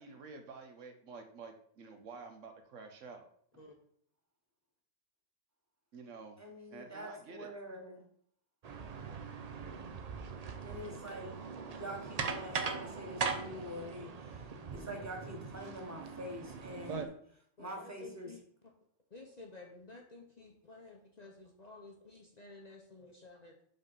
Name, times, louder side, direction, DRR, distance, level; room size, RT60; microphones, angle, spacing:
voice 1, 0.0-3.3 5.9-6.4 6.7-7.5, right 4 dB, 70° right, 6 dB, 1.1 m, -50 dB
voice 2, 6.4-8.0 10.6-11.3 11.7-14.4 14.7-17.1 17.6-18.3, equal, 15° right, 1 dB, 1.2 m, -45 dB
sound 1, 8.6-17.1, right 5 dB, 50° right, 0.4 m, -40 dB
voice 3, 17.6-18.7 19.1-23.5, left 2 dB, 40° left, 0 dB, 0.8 m, -53 dB
5.3 x 3.7 x 5.5 m, 0.62 s
omnidirectional pair, 1.4 m